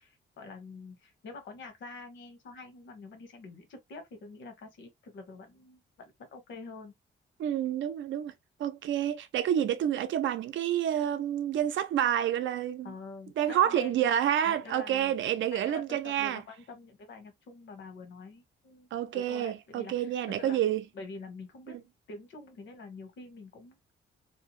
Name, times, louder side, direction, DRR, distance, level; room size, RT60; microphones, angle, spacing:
voice 1, 0.0-6.9 12.8-14.0 14.4-15.1 15.5-20.6 20.9-21.8 22.1-23.8, left 3 dB, 70° left, 1.0 m, -46 dB
voice 2, 7.4-8.3 8.6-12.9 13.4-16.4 18.9-20.8, right 10 dB, 75° right, 0.5 m, -28 dB
2.7 x 2.1 x 2.9 m
wide cardioid pair, 150°, 20 cm